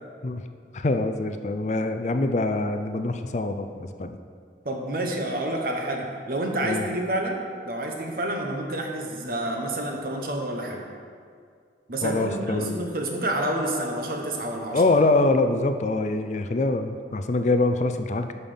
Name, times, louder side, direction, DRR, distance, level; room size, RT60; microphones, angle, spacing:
voice 1, 0.7-4.2 6.6-6.8 12.0-12.8 14.7-18.3, left 2 dB, 40° left, 8 dB, 0.5 m, -24 dB
voice 2, 4.6-7.4 7.6-10.8 11.9-14.8, right 1 dB, 55° right, 2 dB, 1.2 m, -28 dB
9.1 x 5.6 x 7.0 m, 2.1 s
head